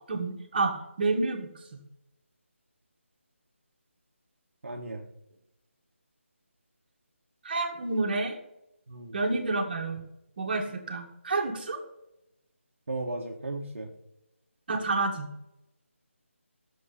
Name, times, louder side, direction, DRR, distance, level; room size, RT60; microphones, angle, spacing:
voice 1, 0.1-1.5 7.4-8.4 9.1-10.0 10.4-11.8 14.7-15.3, right 3 dB, 40° right, 1 dB, 2.4 m, -29 dB
voice 2, 4.6-5.0 8.9-9.2 12.9-13.9, right 2 dB, 65° right, 0 dB, 1.7 m, -35 dB
14.0 x 7.7 x 5.5 m, 0.89 s
figure-of-eight pair, 160°, 7 cm